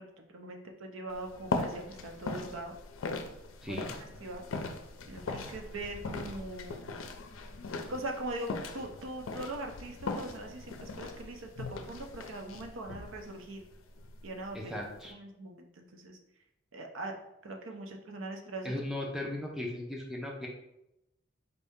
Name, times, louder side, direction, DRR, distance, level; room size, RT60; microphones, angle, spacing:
voice 1, 0.0-2.7 3.7-4.5 5.1-7.0 7.9-13.6 14.2-14.7 15.1-16.2 16.7-17.1 17.4-18.7, right 2 dB, 80° right, 3 dB, 0.6 m, -41 dB
sound 1, 1.1-15.1, left 3 dB, 85° left, 0.4 m, -40 dB
voice 2, 3.6-3.9 14.5-15.2 18.6-20.5, left 1 dB, ahead, -2 dB, 0.5 m, -37 dB
4.2 x 2.7 x 3.5 m, 0.86 s
head